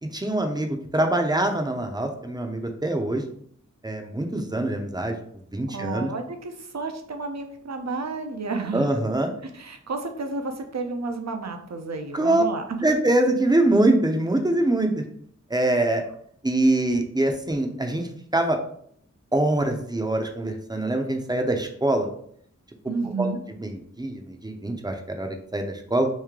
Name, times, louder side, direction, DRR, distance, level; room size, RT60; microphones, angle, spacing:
voice 1, 0.0-3.2 3.8-5.2 5.5-6.1 8.7-9.3 12.1-12.4 12.8-15.0 15.5-16.0 16.4-18.1 18.3-18.6 19.3-22.1 23.2-23.3 23.6-26.1, right 1 dB, 15° right, 4 dB, 0.6 m, -24 dB
voice 2, 5.7-9.0 9.5-12.8 22.9-23.4, right 3 dB, 65° right, 5 dB, 0.6 m, -31 dB
3.1 x 2.7 x 3.6 m, 0.64 s
wide cardioid pair, 55°, 30 cm